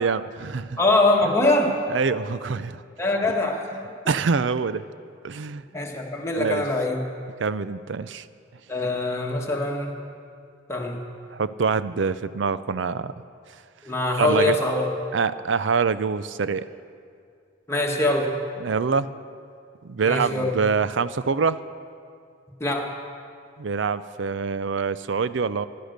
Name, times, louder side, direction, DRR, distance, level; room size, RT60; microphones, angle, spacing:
voice 1, 0.0-0.8 1.9-2.8 4.1-4.8 5.2-5.6 6.3-6.6 7.4-8.3 11.3-13.1 14.2-14.6 15.1-16.7 18.6-19.1 19.8-21.6 23.6-25.7, right 5 dB, 65° right, 15 dB, 0.5 m, -25 dB
voice 2, 0.8-1.8 3.0-3.7 5.7-7.0 8.7-9.9 10.7-11.0 13.8-14.9 17.7-18.3 20.0-20.5 22.6-23.0, left 2 dB, 15° left, 0 dB, 1.5 m, -23 dB
15.0 x 12.0 x 6.6 m, 2.3 s
head